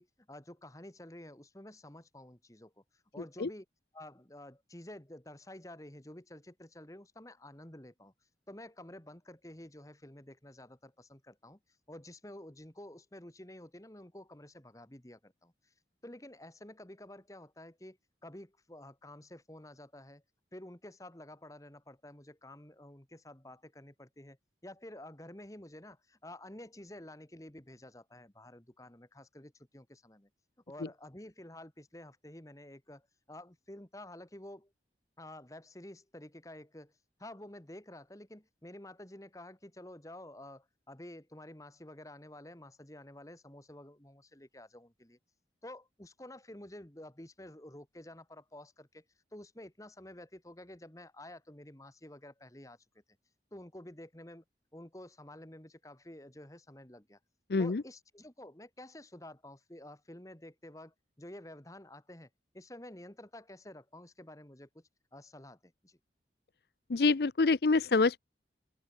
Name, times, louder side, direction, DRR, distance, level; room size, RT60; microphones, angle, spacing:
voice 1, 0.0-3.7 3.9-8.1 8.5-11.6 11.9-15.7 16.0-20.2 20.5-24.4 24.6-30.3 30.7-34.7 35.2-45.2 45.6-49.0 49.3-53.0 53.5-54.4 54.7-57.2 57.6-66.0, left 1 dB, 20° left, 1.7 m, -50 dB
voice 2, 57.5-57.8 66.9-68.2, left 3 dB, 60° left, 0.6 m, -26 dB
open air
head